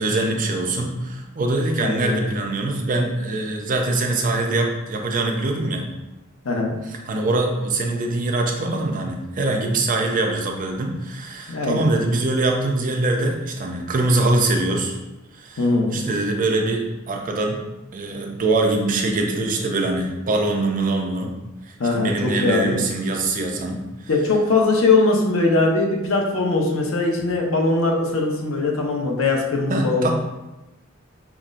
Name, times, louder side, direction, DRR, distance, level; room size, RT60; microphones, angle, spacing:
voice 1, 0.0-5.8 7.1-15.0 15.4-17.6 17.9-21.4 21.9-23.8 29.7-30.1, right 2 dB, 40° right, 2 dB, 0.5 m, -23 dB
voice 2, 1.8-2.3 6.4-6.8 11.5-11.9 15.6-16.0 21.8-22.7 24.1-30.1, left 3 dB, 85° left, 1 dB, 0.7 m, -20 dB
5.8 x 2.1 x 2.5 m, 1.0 s
head